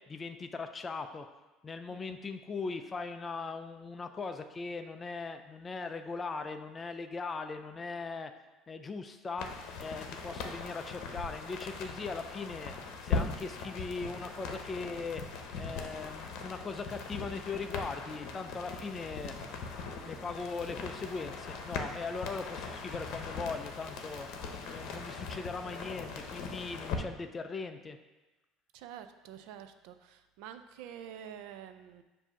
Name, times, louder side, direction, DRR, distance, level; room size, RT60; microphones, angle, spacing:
voice 1, 0.1-1.3 1.6-8.3 8.7-9.5 9.8-12.7 13.0-15.2 15.6-19.4 19.9-24.3 24.7-28.0, left 4 dB, 20° left, 8 dB, 0.4 m, -39 dB
sound 1, 9.4-27.0, left 4 dB, 60° left, 0.8 m, -40 dB
voice 2, 28.7-32.0, right 9 dB, 75° right, 9 dB, 0.4 m, -48 dB
7.2 x 2.7 x 5.7 m, 1.1 s
cardioid pair, 140°, 0 cm